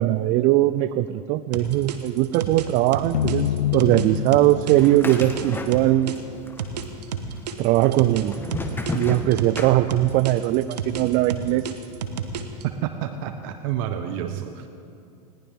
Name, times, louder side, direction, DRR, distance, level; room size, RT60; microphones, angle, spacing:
voice 1, 0.0-6.1 7.6-8.4 8.9-11.7 14.2-14.3, right 15 dB, 40° right, 14 dB, 0.5 m, -20 dB
sound 1, 1.5-6.2 6.6-9.6 9.9-12.6, right 7 dB, 80° right, 1.4 m, -31 dB
sound 2, 3.1-6.4, left 11 dB, 85° left, 0.5 m, -28 dB
sound 3, 4.8-6.2 6.5-7.2 7.8-10.3, left 2 dB, 10° left, 1.5 m, -32 dB
voice 2, 12.6-14.7, right 10 dB, 55° right, 8 dB, 1.0 m, -29 dB
20.5 x 18.5 x 3.7 m, 2.5 s
hypercardioid pair, 110°, 21 cm